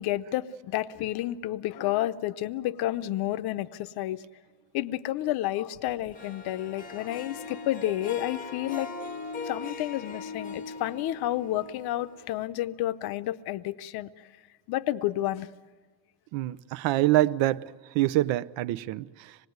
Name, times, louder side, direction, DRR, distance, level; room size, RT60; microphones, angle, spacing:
voice 1, 0.0-4.2 4.7-8.9 9.4-14.1 14.7-15.5, left 14 dB, 55° left, 0.8 m, -30 dB
Harp, 6.1-12.4, left 4 dB, 20° left, 0.8 m, -40 dB
voice 2, 16.3-17.6 17.9-19.0, right 15 dB, 80° right, 0.7 m, -25 dB
26.0 x 20.0 x 9.4 m
cardioid pair, 180°, 45 cm